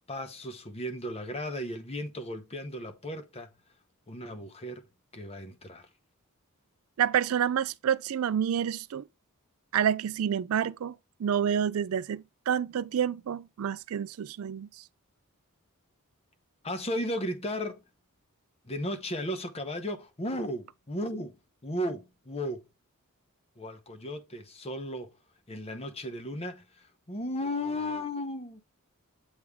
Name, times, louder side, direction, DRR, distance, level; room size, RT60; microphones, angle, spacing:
voice 1, 0.1-3.5 4.1-4.8 5.1-5.9 16.6-17.8 18.6-21.4 21.6-22.6 23.6-25.1 25.5-28.6, left 1 dB, 30° left, 1.0 m, -35 dB
voice 2, 7.0-9.0 9.7-10.9 11.2-14.7, right 8 dB, 70° right, 0.3 m, -28 dB
8.2 x 3.2 x 3.5 m
head